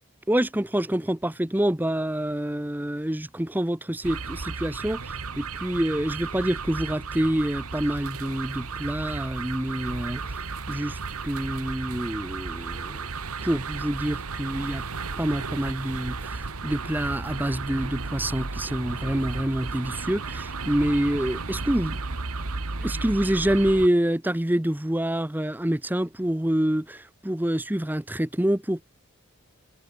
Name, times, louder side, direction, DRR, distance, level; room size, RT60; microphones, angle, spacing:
voice 1, 0.3-13.1 13.4-14.8 15.1-22.0 22.8-28.8, right 1 dB, 10° right, 0.7 m, -27 dB
sound 1, 4.0-23.9, right 4 dB, 90° right, 1.6 m, -34 dB
head